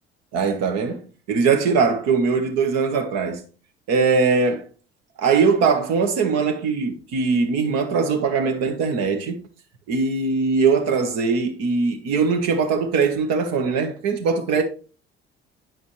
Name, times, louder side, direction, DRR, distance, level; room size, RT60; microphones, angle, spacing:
voice 1, 0.3-3.4 3.9-4.6 5.2-9.4 9.9-14.6, right 5 dB, 55° right, 1.5 m, -21 dB
9.0 x 4.9 x 3.2 m
figure-of-eight pair, 55°, 30 cm